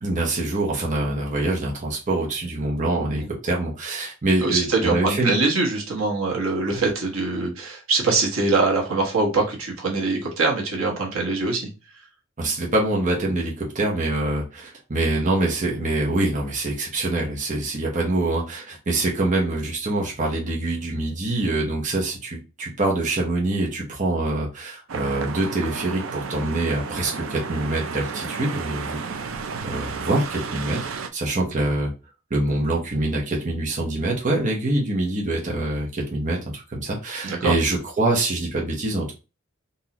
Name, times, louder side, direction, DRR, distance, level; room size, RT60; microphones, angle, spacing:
voice 1, 0.0-5.3 6.8-6.9 12.4-29.0 29.3-30.8 31.1-31.9 32.3-39.1, right 2 dB, 40° right, -2 dB, 0.9 m, -25 dB
voice 2, 4.4-11.7 37.2-37.5, right 3 dB, 90° right, -1 dB, 1.3 m, -23 dB
sound 1, 24.9-31.1, right 5 dB, 70° right, 0.5 m, -32 dB
3.9 x 2.7 x 2.9 m, 0.30 s
head